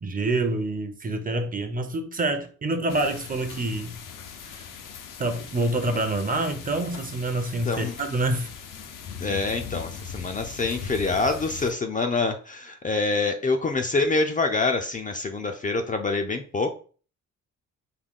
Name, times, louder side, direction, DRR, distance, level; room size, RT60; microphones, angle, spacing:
voice 1, 0.0-4.0 5.2-8.5, right 2 dB, 25° right, 0.6 m, -27 dB
sound 1, 2.9-11.7, left 6 dB, 80° left, 0.7 m, -40 dB
voice 2, 9.2-16.7, left 3 dB, 25° left, 0.4 m, -26 dB
3.7 x 2.2 x 3.6 m
cardioid pair, 80°, 32 cm